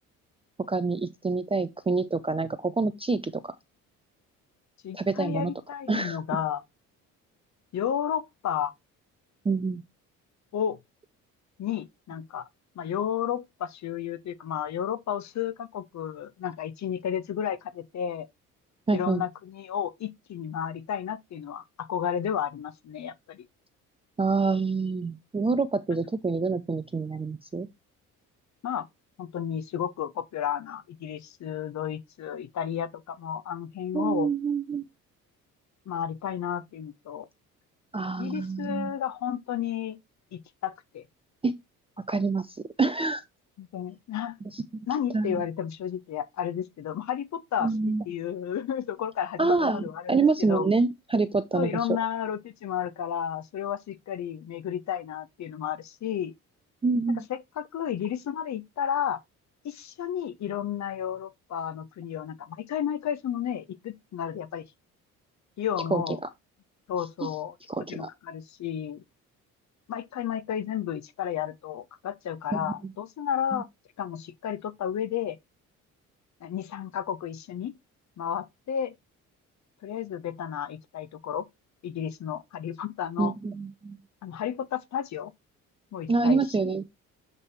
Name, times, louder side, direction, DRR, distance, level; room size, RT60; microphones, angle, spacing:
voice 1, 0.7-3.4 4.9-5.5 5.9-6.2 9.4-9.8 18.9-19.2 24.2-27.7 33.9-34.8 37.9-38.9 41.4-41.5 42.1-43.2 44.5-44.9 45.1-45.4 47.6-48.0 49.4-51.7 56.8-57.2 65.9-66.0 67.2-67.3 67.7-68.1 72.5-72.7 73.5-73.6 83.2-84.0 86.1-86.8, right 4 dB, 15° right, 0.5 m, -26 dB
voice 2, 4.8-6.6 7.7-8.7 10.5-10.8 11.6-12.5 12.8-18.3 18.9-23.5 28.6-28.9 29.2-34.3 35.9-37.3 38.2-40.0 40.3-41.0 43.6-44.4 44.9-50.7 51.5-56.3 57.3-59.2 59.6-64.6 65.6-66.2 66.9-69.0 69.9-73.7 74.0-75.4 76.4-77.7 78.2-78.9 79.8-81.5 81.8-83.3 84.2-85.3 85.9-86.8, left 9 dB, 40° left, 0.9 m, -32 dB
7.4 x 3.2 x 4.2 m
hypercardioid pair, 50°, 43 cm